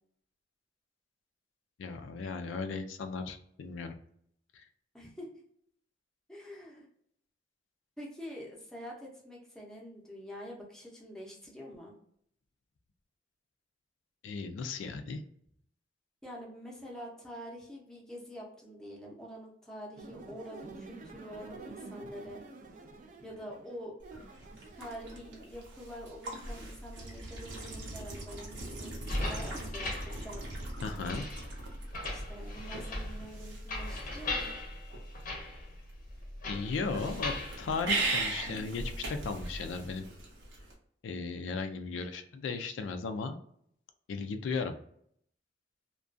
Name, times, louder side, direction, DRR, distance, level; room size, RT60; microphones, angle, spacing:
voice 1, 1.8-3.9 4.5-4.6 14.2-15.2 30.8-31.3 36.5-40.1 41.0-43.4 44.1-44.7, left 4 dB, 90° left, 8 dB, 0.3 m, -36 dB
voice 2, 4.9-5.3 6.3-6.9 8.0-12.0 16.2-22.4 23.2-24.0 24.8-30.5 32.1-34.5, equal, 5° left, -3 dB, 0.6 m, -46 dB
sound 1, 20.0-25.5, right 3 dB, 45° right, 0.3 m, -49 dB
sound 2, 24.0-40.7, right 2 dB, 80° right, 0.7 m, -40 dB
sound 3, 28.9-38.6, left 1 dB, 45° left, 0.6 m, -39 dB
2.4 x 2.2 x 2.5 m, 0.67 s
head